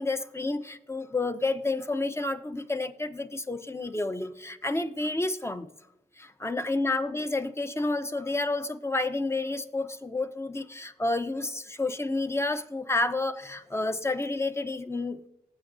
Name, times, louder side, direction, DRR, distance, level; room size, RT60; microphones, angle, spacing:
voice 1, 0.0-5.7 6.2-15.3, left 2 dB, 15° left, 9 dB, 0.9 m, -30 dB
18.5 x 7.8 x 2.7 m, 0.86 s
supercardioid pair, 45°, 16 cm